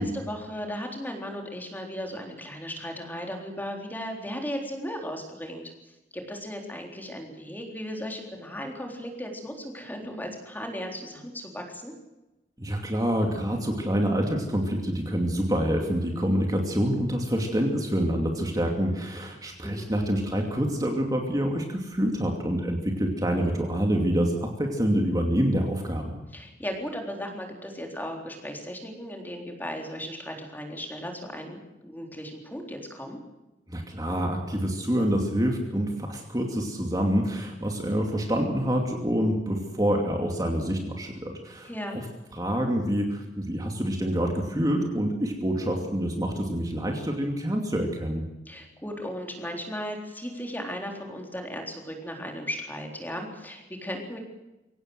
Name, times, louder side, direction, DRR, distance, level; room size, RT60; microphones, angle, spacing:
voice 1, 0.0-11.9 19.6-19.9 26.3-33.2 41.6-42.0 48.5-54.2, equal, 10° left, 2 dB, 3.8 m, -36 dB
voice 2, 12.6-26.2 33.7-42.0 42.3-48.2, equal, 20° right, 2 dB, 2.6 m, -27 dB
24.0 x 17.5 x 8.0 m, 1.0 s
head